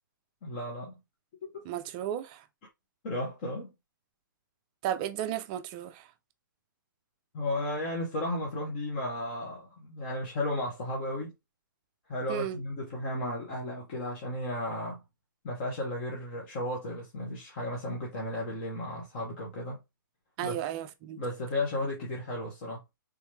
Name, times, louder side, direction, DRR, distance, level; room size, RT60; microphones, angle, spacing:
voice 1, 0.4-0.9 1.4-1.6 3.0-3.7 7.3-11.3 12.1-15.0 15.4-19.8 20.4-20.5 21.2-22.8, left 1 dB, 35° left, 1.1 m, -34 dB
voice 2, 1.7-2.4 4.8-6.1 12.3-12.6 20.4-21.2, right 10 dB, 25° right, 0.4 m, -34 dB
3.5 x 3.1 x 3.2 m
hypercardioid pair, 155°, 12 cm